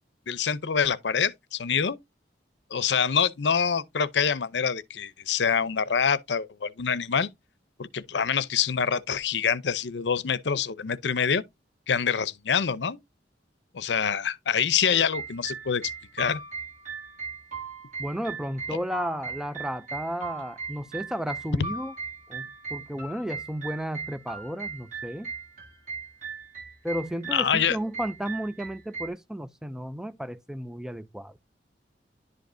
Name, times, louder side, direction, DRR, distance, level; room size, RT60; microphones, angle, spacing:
voice 1, 0.3-2.0 2.7-7.3 7.8-11.4 11.9-13.0 13.7-15.8 16.1-16.4 27.3-27.8, left 7 dB, 80° left, 0.6 m, -26 dB
sound 1, 14.9-29.1, right 4 dB, 45° right, 2.3 m, -38 dB
voice 2, 18.0-21.9 22.3-25.3 26.8-31.4, equal, 5° right, 0.4 m, -33 dB
11.0 x 5.1 x 2.6 m
head